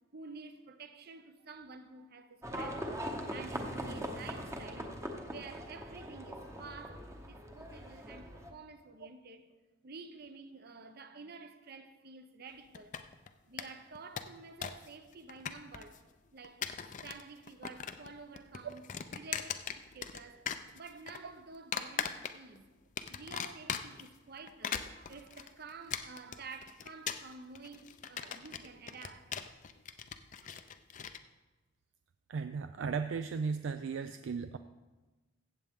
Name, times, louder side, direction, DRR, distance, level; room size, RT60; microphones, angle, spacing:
voice 1, 0.1-2.8 3.3-5.0 5.3-9.5 9.8-13.0 13.5-16.0 16.3-16.6 17.0-22.7 23.1-29.3 30.4-30.5, right 4 dB, 50° right, 0.8 m, -50 dB
Livestock farm animals working animals, 2.4-8.5, equal, 15° right, 0.9 m, -41 dB
sound 1, 12.7-13.3 13.6-13.7 14.0-14.9 15.1-16.0 16.4-17.2 17.5-18.1 18.4-20.2 20.5-21.2 21.7-22.6 23.0-24.1 24.5-31.2, left 7 dB, 40° left, 0.4 m, -39 dB
voice 2, 32.3-34.6, right 5 dB, 65° right, 0.4 m, -36 dB
15.0 x 7.8 x 3.6 m
head